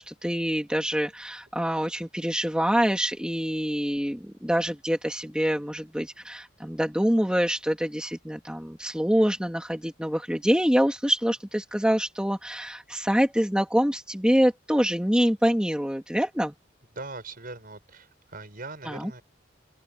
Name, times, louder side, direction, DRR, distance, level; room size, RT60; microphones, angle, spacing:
voice 1, 0.0-16.5 18.8-19.2, equal, 5° right, 2.3 m, -25 dB
voice 2, 16.9-19.2, right 3 dB, 50° right, 5.7 m, -40 dB
open air
head